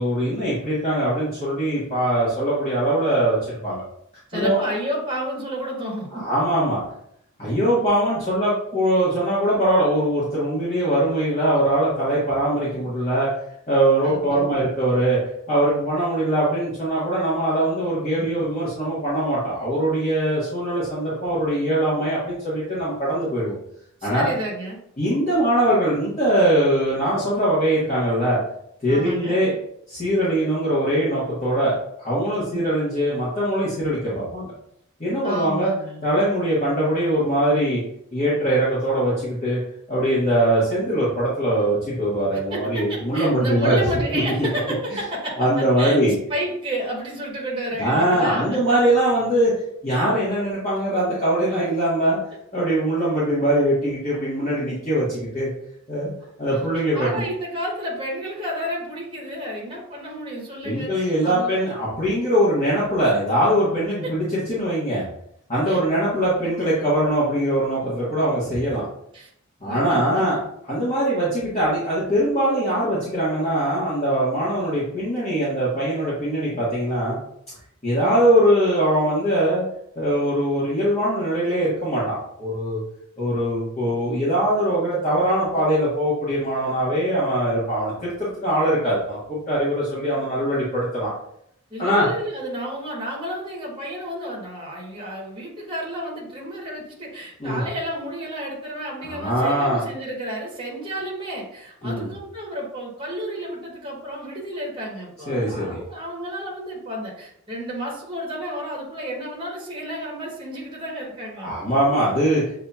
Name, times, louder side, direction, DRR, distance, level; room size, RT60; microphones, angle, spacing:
voice 1, 0.0-3.8 4.3-4.6 6.1-6.8 7.4-13.3 13.7-15.2 15.5-23.6 24.0-24.3 25.0-28.4 28.8-29.5 29.9-34.5 35.0-35.7 36.0-37.8 38.1-39.6 39.9-43.8 44.9-45.0 45.4-46.1 47.8-49.5 49.8-52.2 52.5-55.5 55.9-56.1 56.4-57.2 60.6-65.0 65.5-68.8 69.6-70.4 70.7-77.2 77.8-79.6 79.9-82.8 83.2-91.1 91.8-92.1 97.4-97.6 99.0-99.8 101.8-102.1 105.3-105.8 111.4-112.4, right 1 dB, 30° left, -9 dB, 1.3 m, -22 dB
voice 2, 4.3-6.2 14.0-14.7 24.0-24.8 28.9-29.5 32.5-32.7 35.2-36.0 42.3-46.0 46.3-48.6 56.5-61.6 64.0-64.1 65.7-65.8 69.1-69.3 69.6-70.3 78.0-78.3 83.8-84.0 85.5-85.7 91.7-111.5, equal, 25° right, -3 dB, 1.2 m, -31 dB
7.5 x 2.8 x 2.4 m, 0.73 s
head